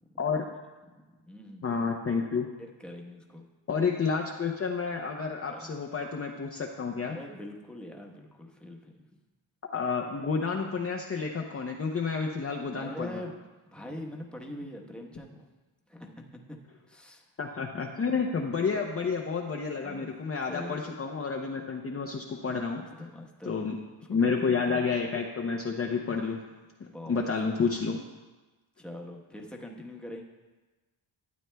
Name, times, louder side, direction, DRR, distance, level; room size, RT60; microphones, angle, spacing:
voice 1, 0.9-1.7 2.6-3.5 5.5-5.8 7.0-9.2 12.8-13.4 13.6-15.5 15.9-16.6 16.9-17.3 18.7-18.9 19.8-20.1 20.5-21.0 22.7-23.7 24.0-25.0 26.9-27.6 28.8-30.2, left 1 dB, ahead, 0 dB, 1.1 m, -43 dB
voice 2, 1.6-2.5 3.7-7.2 9.7-13.1 17.4-22.8 23.5-23.8 24.1-26.4 27.1-28.0, left 5 dB, 30° left, 0 dB, 0.7 m, -30 dB
12.5 x 8.6 x 2.2 m, 1.2 s
cardioid pair, 85°, 48 cm